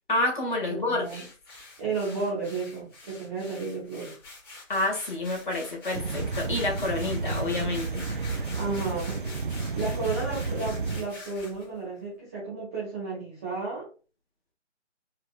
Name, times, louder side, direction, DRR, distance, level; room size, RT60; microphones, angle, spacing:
voice 1, 0.1-1.3 4.7-8.0, left 2 dB, 40° left, 1.8 m, -28 dB
voice 2, 0.7-1.2 1.8-4.2 8.5-9.2 9.7-13.9, right 4 dB, 10° right, 1.0 m, -33 dB
sound 1, 1.0-11.7, left 3 dB, 20° left, 2.5 m, -46 dB
sound 2, 5.9-11.0, right 4 dB, 45° right, 0.4 m, -31 dB
4.7 x 3.7 x 2.4 m
figure-of-eight pair, 150°, 37 cm